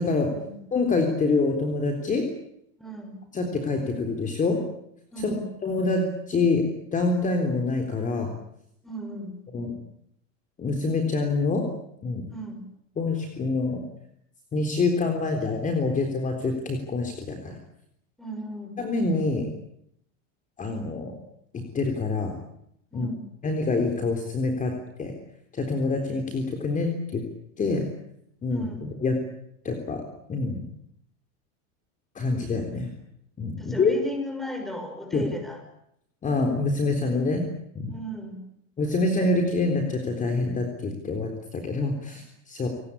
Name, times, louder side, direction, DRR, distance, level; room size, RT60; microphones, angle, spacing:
voice 1, 0.7-2.2 3.3-4.6 5.2-6.6 6.9-8.3 9.5-9.8 10.6-11.7 12.0-12.3 13.0-13.8 14.5-17.6 18.8-19.5 20.6-21.1 21.5-22.4 22.9-23.1 23.4-24.7 25.0-25.1 25.5-27.2 27.6-27.9 28.4-29.2 29.6-30.0 30.3-30.6 32.2-32.9 33.4-33.9 35.1-35.2 36.2-37.4 37.7-38.0 38.8-42.7, left 3 dB, 20° left, 4 dB, 3.7 m, -26 dB
voice 2, 2.8-3.2 5.1-5.5 8.8-9.4 12.3-12.7 18.2-18.8 22.9-23.2 28.5-28.9 33.6-35.6 37.2-37.4 37.9-38.4, equal, ahead, 5 dB, 5.6 m, -36 dB
29.0 x 19.0 x 8.5 m, 0.75 s
supercardioid pair, 145°, 38 cm